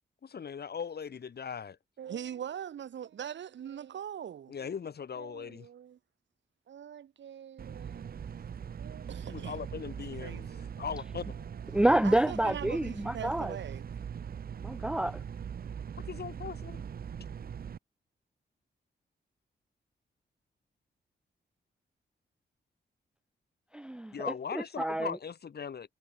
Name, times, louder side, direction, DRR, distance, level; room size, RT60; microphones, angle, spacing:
voice 1, 0.2-1.8 4.5-5.7 9.3-10.5 10.8-11.3 16.0-16.8 24.1-25.9, left 7 dB, 60° left, 5.0 m, -39 dB
voice 2, 2.0-4.7 5.2-6.0 6.7-8.2 8.8-9.6 10.2-10.8 12.0-13.9, right 9 dB, 80° right, 2.2 m, -42 dB
sound 1, 7.6-17.8, right 7 dB, 55° right, 0.9 m, -41 dB
voice 3, 11.7-13.6 14.6-15.2 23.7-25.2, right 1 dB, 5° right, 0.4 m, -28 dB
cardioid pair, 100°, 19 cm